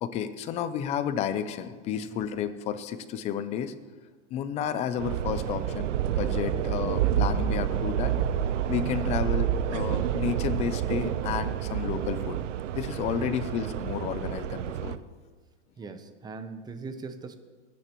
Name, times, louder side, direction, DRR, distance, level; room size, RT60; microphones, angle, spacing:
voice 1, 0.0-3.7 4.3-8.2 8.7-12.4 12.8-15.0, left 9 dB, 20° left, 12 dB, 0.4 m, -31 dB
sound 1, 5.0-15.0, right 10 dB, 80° right, 0.7 m, -29 dB
voice 2, 15.8-17.3, right 4 dB, 10° right, 9 dB, 0.7 m, -40 dB
23.5 x 10.0 x 3.0 m, 1.5 s
supercardioid pair, 145°, 37 cm